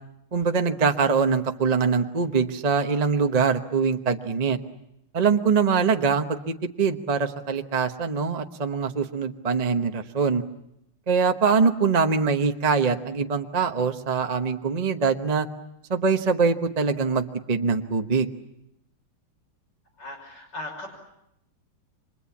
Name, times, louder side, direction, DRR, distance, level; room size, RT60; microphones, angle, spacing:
voice 1, 0.3-4.6 5.1-10.4 11.1-15.5 15.9-18.3, right 5 dB, 30° right, 6 dB, 0.8 m, -23 dB
voice 2, 20.0-20.9, left 1 dB, 55° left, 2 dB, 6.3 m, -37 dB
30.0 x 25.5 x 7.3 m, 0.81 s
omnidirectional pair, 2.3 m